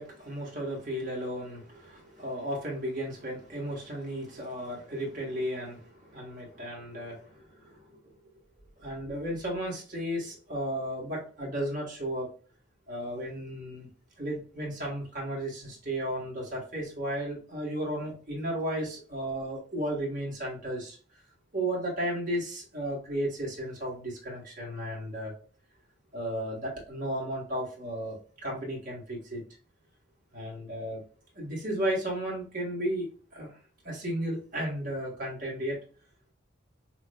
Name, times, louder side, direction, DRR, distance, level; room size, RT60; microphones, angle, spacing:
voice 1, 0.0-8.0 8.8-12.3 12.9-13.9 14.2-21.0 21.5-25.3 26.1-28.2 28.4-29.4 30.3-31.0 31.3-33.5 33.8-35.8, right 1 dB, 40° right, -3 dB, 1.4 m, -34 dB
5.8 x 2.1 x 2.2 m, 0.40 s
head